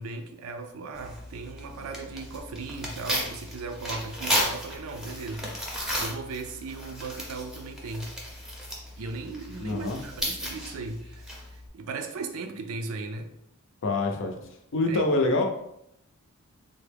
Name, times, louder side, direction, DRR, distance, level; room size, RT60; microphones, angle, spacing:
voice 1, 0.0-8.1 9.0-13.3 14.9-15.0, right 3 dB, 70° right, 6 dB, 0.4 m, -37 dB
Tearing, 0.9-11.7, equal, ahead, 0.6 m, -34 dB
voice 2, 9.6-10.0 13.8-14.3 14.7-15.4, left 2 dB, 60° left, 3 dB, 0.5 m, -25 dB
3.4 x 2.1 x 3.3 m, 0.78 s
head